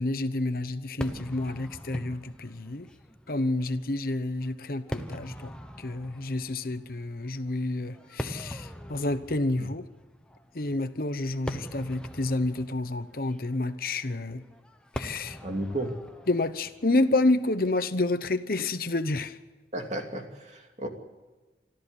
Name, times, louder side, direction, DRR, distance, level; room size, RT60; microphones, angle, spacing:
voice 1, 0.0-2.9 3.3-9.8 10.5-14.4 15.0-15.4 16.3-19.4, left 2 dB, 55° left, 1.0 m, -29 dB
Fireworks, 1.0-18.3, equal, 5° left, 1.1 m, -42 dB
voice 2, 15.4-16.0 19.7-20.9, right 1 dB, 40° right, 2.7 m, -33 dB
25.5 x 14.0 x 8.3 m
head